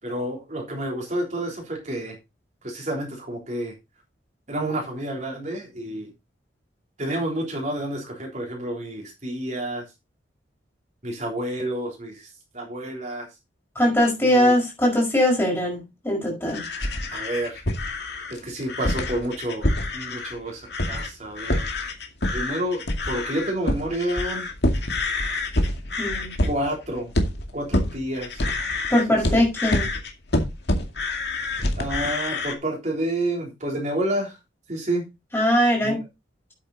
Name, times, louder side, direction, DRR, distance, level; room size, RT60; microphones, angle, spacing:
voice 1, 0.0-2.2 2.6-3.7 4.5-6.1 7.0-9.9 11.0-13.3 14.2-14.5 17.1-17.6 18.3-19.7 19.9-21.7 22.3-24.5 26.4-27.1 27.5-28.5 29.1-29.4 31.8-34.4 34.7-35.1 35.8-36.0, right 1 dB, 40° right, 3.6 m, -29 dB
voice 2, 13.8-16.6 26.0-26.3 28.9-29.9 35.3-36.0, left 1 dB, 10° left, 5.4 m, -21 dB
sound 1, 16.5-20.4 20.7-21.1 21.4-32.6, left 1 dB, 55° left, 2.2 m, -26 dB
9.8 x 8.3 x 4.1 m
head